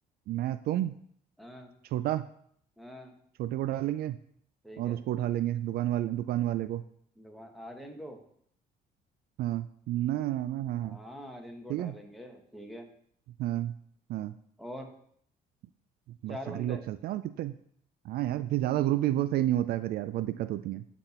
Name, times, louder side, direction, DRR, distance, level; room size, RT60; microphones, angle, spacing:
voice 1, 0.3-1.0 1.9-2.3 3.4-4.2 4.8-6.8 9.4-11.0 11.7-11.9 13.4-13.8 14.1-14.3 16.2-17.5 18.1-20.8, right 13 dB, 65° right, 13 dB, 0.4 m, -30 dB
voice 2, 1.4-1.7 2.8-3.1 4.6-5.0 7.2-8.2 10.8-12.9 14.6-14.9 16.3-16.8, equal, ahead, 3 dB, 1.3 m, -44 dB
11.5 x 4.2 x 4.3 m, 0.65 s
cardioid pair, 110°, 17 cm